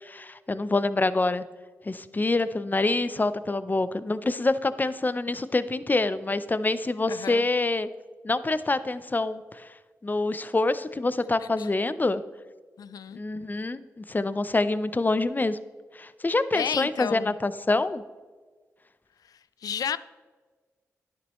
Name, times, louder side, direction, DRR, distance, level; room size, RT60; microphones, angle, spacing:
voice 1, 0.0-1.4 1.8-7.9 8.2-9.7 10.0-12.2 13.1-15.6 15.9-18.0, left 2 dB, 30° left, 15 dB, 0.6 m, -26 dB
voice 2, 7.1-7.5 11.6-11.7 12.8-13.2 16.5-17.3 19.6-20.0, left 8 dB, 70° left, 16 dB, 0.4 m, -31 dB
10.5 x 9.3 x 3.1 m, 1.4 s
supercardioid pair, 40°, 6 cm